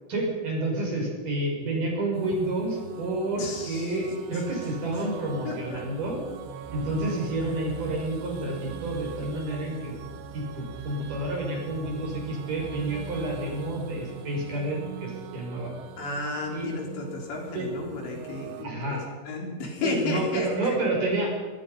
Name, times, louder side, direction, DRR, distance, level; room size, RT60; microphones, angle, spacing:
voice 1, 0.1-6.2 6.7-9.9 10.3-15.7 16.5-16.7 17.5-17.7 18.6-19.0 19.8-21.3, right 2 dB, 45° right, -1 dB, 6.9 m, -29 dB
sound 1, 2.1-18.7, right 8 dB, 80° right, 3.4 m, -42 dB
voice 2, 3.4-4.0 5.5-5.8 16.0-19.0 19.3-20.8, left 3 dB, 70° left, 0 dB, 5.8 m, -33 dB
25.5 x 20.5 x 5.5 m, 1.4 s
omnidirectional pair, 5.4 m